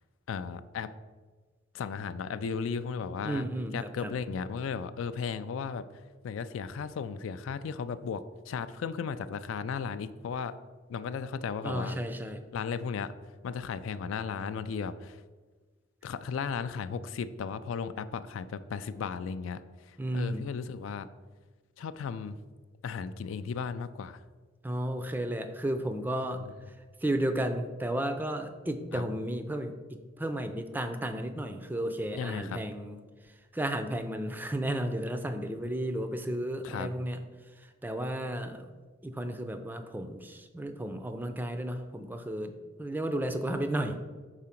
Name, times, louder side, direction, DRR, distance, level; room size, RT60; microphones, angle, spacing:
voice 1, 0.3-0.9 1.7-3.5 3.7-5.8 6.2-10.5 10.9-12.0 12.5-13.1 13.4-15.2 16.0-21.1 21.8-22.4 22.8-24.2 28.9-29.0 32.1-32.6 36.6-36.9, left 6 dB, 75° left, 13 dB, 0.3 m, -35 dB
voice 2, 3.2-4.1 11.6-12.4 20.0-20.5 24.6-26.4 27.0-33.0 33.5-37.2 37.6-38.7 39.0-44.0, right 1 dB, 10° right, 7 dB, 0.4 m, -33 dB
4.9 x 3.7 x 5.7 m, 1.4 s
head